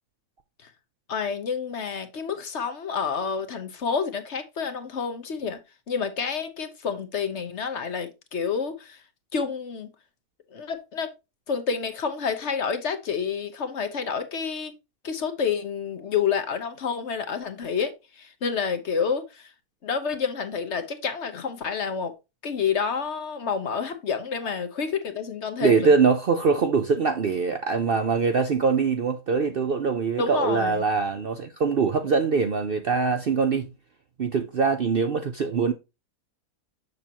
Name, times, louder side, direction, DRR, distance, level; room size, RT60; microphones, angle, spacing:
voice 1, 1.1-5.6 5.9-9.0 9.3-9.9 10.5-11.1 11.5-14.8 15.0-19.5 19.8-22.1 22.4-25.9 30.2-30.8, left 6 dB, 55° left, 1.1 m, -29 dB
voice 2, 25.6-33.7 34.2-35.7, right 5 dB, 55° right, 0.7 m, -23 dB
7.0 x 6.8 x 2.9 m
omnidirectional pair, 1.6 m